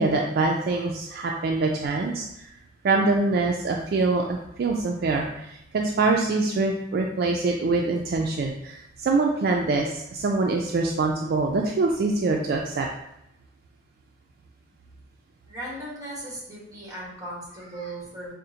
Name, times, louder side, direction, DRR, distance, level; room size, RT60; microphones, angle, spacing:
voice 1, 0.0-2.5 2.8-12.9, right 3 dB, 60° right, 1 dB, 0.3 m, -24 dB
voice 2, 15.5-18.3, right 1 dB, 20° right, -5 dB, 1.4 m, -37 dB
4.7 x 2.0 x 2.8 m, 0.79 s
head